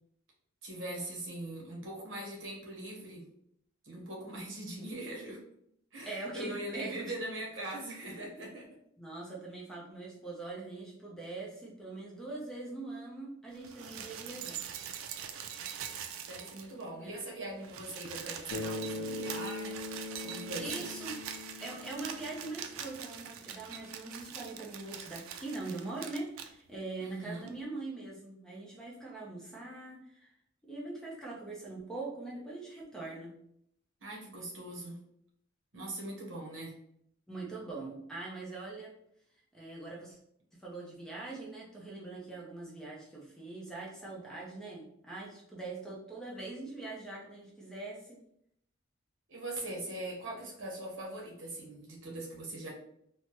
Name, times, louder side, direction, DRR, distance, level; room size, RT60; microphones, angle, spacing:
voice 1, 0.6-3.3 3.8-5.4 5.9-8.7 16.3-19.8 20.2-20.8 27.0-27.6 34.0-35.0 35.7-36.8 49.3-52.7, right 1 dB, 65° right, -2 dB, 0.9 m, -41 dB
voice 2, 6.1-7.1 9.0-14.6 17.0-17.1 20.6-21.2 21.6-30.3 30.6-33.4 37.3-38.9 39.5-40.2 40.5-48.2, right 2 dB, 5° left, -3 dB, 0.5 m, -42 dB
sound 1, 13.6-16.9 17.2-17.3 17.5-26.5 27.5-27.6, right 8 dB, 90° right, 0.3 m, -43 dB
Bass guitar, 18.5-22.9, left 3 dB, 70° left, 0.5 m, -41 dB
3.3 x 2.0 x 2.9 m, 0.72 s
head